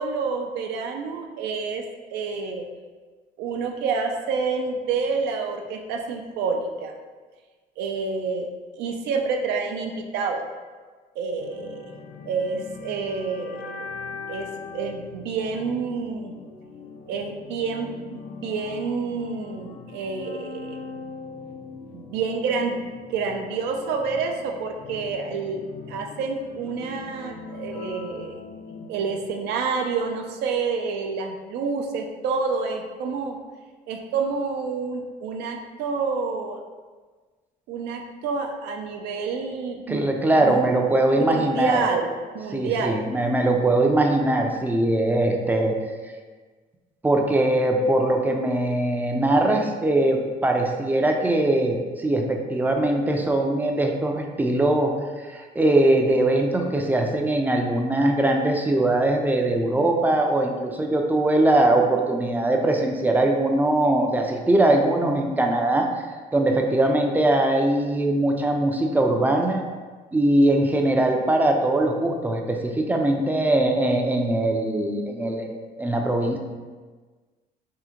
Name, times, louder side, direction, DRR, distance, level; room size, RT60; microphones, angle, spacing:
voice 1, 0.0-1.8 2.1-2.7 3.4-6.9 7.8-8.5 8.8-10.5 11.2-11.9 12.3-13.9 14.3-14.5 14.7-16.3 17.1-20.8 21.9-22.8 23.1-25.6 25.9-28.4 28.9-33.4 33.9-36.6 37.7-40.1 40.4-40.6 41.3-43.1, right 5 dB, 85° right, 3 dB, 0.4 m, -28 dB
sound 1, 11.4-29.3, left 4 dB, 80° left, 0.4 m, -41 dB
voice 2, 39.9-41.8 42.5-45.8 47.0-54.9 55.2-66.0 66.3-69.6 70.1-76.4, right 1 dB, 10° right, 2 dB, 0.3 m, -21 dB
3.6 x 2.1 x 2.8 m, 1.4 s
cardioid pair, 110°, 17 cm